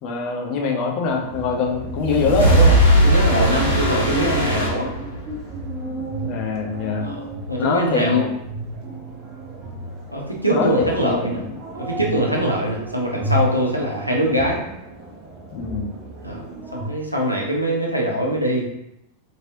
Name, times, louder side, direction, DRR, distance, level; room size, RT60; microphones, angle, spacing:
voice 1, 0.0-2.8 6.2-7.1 7.6-8.3 10.5-11.5 15.5-15.9, left 4 dB, 40° left, 1 dB, 0.6 m, -23 dB
sound 1, 1.1-16.9, right 1 dB, 40° right, 0.6 m, -33 dB
sound 2, 1.7-5.5, right 1 dB, 70° left, 1.1 m, -18 dB
voice 2, 3.0-4.9 7.0-7.2 7.5-8.3 10.1-11.4 11.8-14.6 16.2-16.4 16.7-18.6, equal, 90° right, -2 dB, 0.7 m, -23 dB
3.0 x 2.8 x 2.6 m, 0.82 s
figure-of-eight pair, 90°, 0 cm